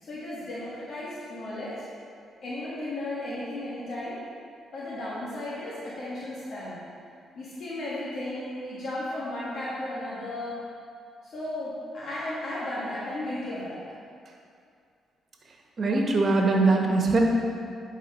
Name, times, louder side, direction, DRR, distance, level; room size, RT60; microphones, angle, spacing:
voice 1, 0.0-1.8 2.4-4.2 4.7-6.8 7.4-10.6 11.2-13.8, left 1 dB, 55° left, -9 dB, 1.9 m, -34 dB
voice 2, 15.8-17.2, right 3 dB, 40° right, 0 dB, 1.4 m, -22 dB
10.5 x 4.9 x 4.4 m, 2.4 s
cardioid pair, 90°, 0 cm